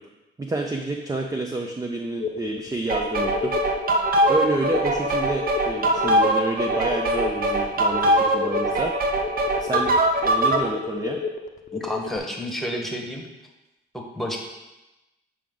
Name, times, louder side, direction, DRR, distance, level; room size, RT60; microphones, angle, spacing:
voice 1, 0.4-3.6 4.3-8.9 9.6-9.9 10.2-11.2, right 2 dB, 15° right, 3 dB, 0.6 m, -28 dB
sound 1, 2.2-12.2, left 6 dB, 40° left, 0.7 m, -32 dB
sound 2, 2.9-10.7, right 1 dB, 45° right, 0.8 m, -22 dB
voice 2, 11.7-13.2 13.9-14.4, equal, ahead, 0 dB, 1.4 m, -30 dB
7.6 x 4.8 x 3.8 m, 1.0 s
cardioid pair, 90°, 20 cm